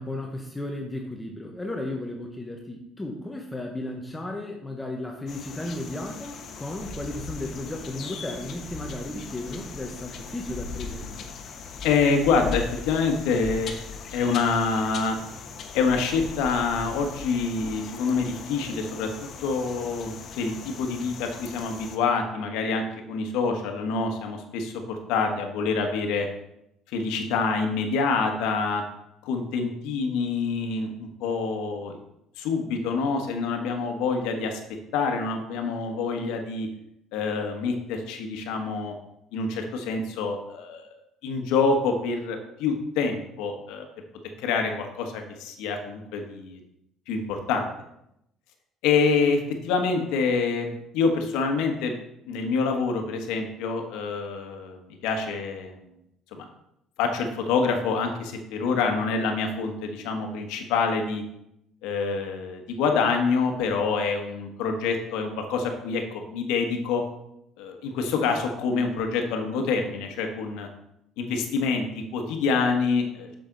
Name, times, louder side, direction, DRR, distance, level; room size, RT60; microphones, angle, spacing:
voice 1, 0.0-11.3, left 1 dB, 15° left, 1 dB, 1.0 m, -34 dB
sound 1, 5.3-22.0, left 5 dB, 55° left, 1.1 m, -39 dB
voice 2, 11.8-13.8 14.1-15.2 15.7-19.1 19.4-26.3 26.9-28.8 29.2-32.0 32.4-34.6 34.9-36.7 37.1-38.9 39.3-40.9 41.2-43.9 44.4-46.6 47.1-47.7 48.8-51.9 52.3-55.8 56.3-56.4 57.0-61.2 61.8-67.0 67.6-70.7 71.2-73.3, left 4 dB, 85° left, 4 dB, 1.3 m, -26 dB
7.6 x 6.8 x 3.9 m, 0.81 s
cardioid pair, 100°, 0 cm